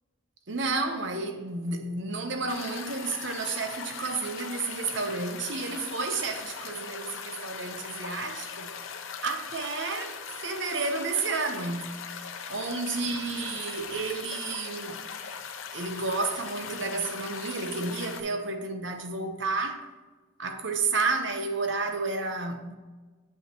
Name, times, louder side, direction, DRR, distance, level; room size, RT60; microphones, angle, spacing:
voice 1, 0.5-8.7 9.2-12.0 12.5-15.0 15.7-19.9 20.4-22.7, right 3 dB, 65° right, 0.8 m, -31 dB
sound 1, 2.5-18.2, left 6 dB, 85° left, 0.6 m, -40 dB
8.7 x 5.6 x 2.9 m
head